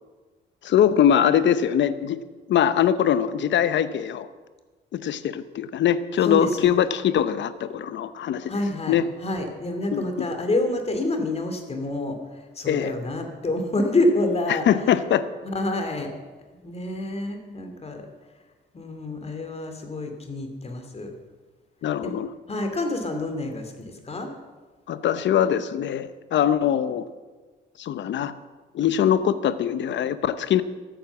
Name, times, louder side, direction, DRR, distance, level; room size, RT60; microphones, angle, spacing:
voice 1, 0.6-2.2 2.5-4.3 4.9-8.5 8.9-9.0 9.9-10.3 12.7-12.9 14.5-15.2 21.8-22.3 24.9-27.1 27.8-28.3 28.7-30.6, left 9 dB, 65° left, 14 dB, 0.8 m, -22 dB
voice 2, 6.2-6.7 8.5-14.7 15.4-16.1 16.6-18.0 18.7-21.1 22.0-22.1 22.5-24.3, left 2 dB, 30° left, 5 dB, 2.5 m, -27 dB
14.0 x 8.9 x 7.2 m, 1.3 s
cardioid pair, 90°, 20 cm